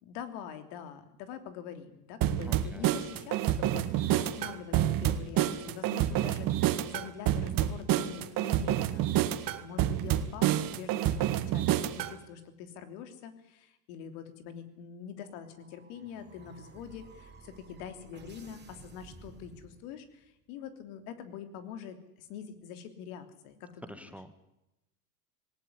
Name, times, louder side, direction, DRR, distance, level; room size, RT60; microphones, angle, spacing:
voice 1, 0.0-9.1 9.6-24.1, left 8 dB, 65° left, 9 dB, 3.3 m, -45 dB
sound 1, 2.2-12.1, right 12 dB, 45° right, 1.8 m, -28 dB
voice 2, 2.5-2.8 23.9-24.4, equal, 5° right, 11 dB, 1.4 m, -47 dB
sound 2, 15.2-20.2, right 4 dB, 20° right, 5.1 m, -54 dB
19.0 x 18.0 x 9.8 m, 0.91 s
hypercardioid pair, 105°, 48 cm